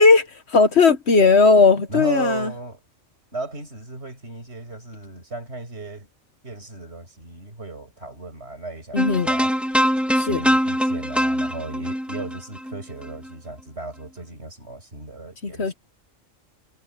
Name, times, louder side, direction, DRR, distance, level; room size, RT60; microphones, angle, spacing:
voice 1, 0.0-2.5 8.9-9.3 10.2-10.4 15.4-15.7, left 4 dB, 55° left, 1.4 m, -17 dB
voice 2, 1.9-2.8 3.3-6.1 6.4-9.5 10.3-15.7, right 2 dB, 50° right, 6.5 m, -35 dB
sound 1, 9.0-13.3, equal, ahead, 1.3 m, -23 dB
omnidirectional pair, 1.4 m